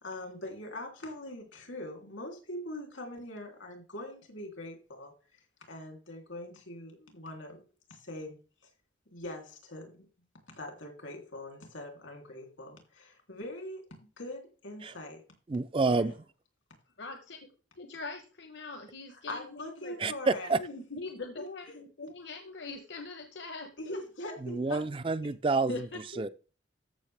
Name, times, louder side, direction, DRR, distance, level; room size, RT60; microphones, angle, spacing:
voice 1, 0.0-5.1 5.7-7.6 7.9-8.4 9.1-10.1 10.5-13.8 14.2-15.2 15.9-16.1 19.1-20.5 21.4-21.8 23.8-24.8 25.2-25.3, left 1 dB, 90° left, 3.2 m, -42 dB
voice 2, 15.5-16.1 20.0-20.6 24.4-25.9 26.2-26.3, right 3 dB, 25° right, 0.4 m, -28 dB
voice 3, 17.0-17.4 17.8-20.1 20.6-24.0 25.7-26.3, left 3 dB, 65° left, 1.0 m, -42 dB
13.5 x 6.3 x 3.4 m
head